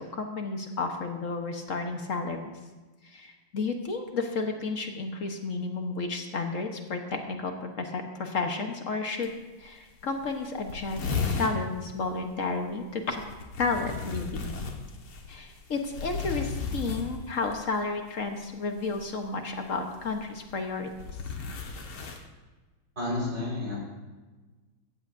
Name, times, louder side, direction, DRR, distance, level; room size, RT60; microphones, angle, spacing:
voice 1, 0.0-2.4 3.0-13.2 13.6-14.5 15.3-20.9, left 3 dB, 45° left, 4 dB, 1.3 m, -32 dB
sound 1, 9.2-9.3 9.6-9.7 10.0-10.1 10.3-11.6 13.1-17.5 18.8-19.1 19.9-22.2, left 4 dB, 90° left, 2.3 m, -34 dB
voice 2, 23.0-23.8, left 2 dB, 30° right, -6 dB, 4.8 m, -30 dB
15.5 x 15.0 x 2.6 m, 1.2 s
omnidirectional pair, 2.3 m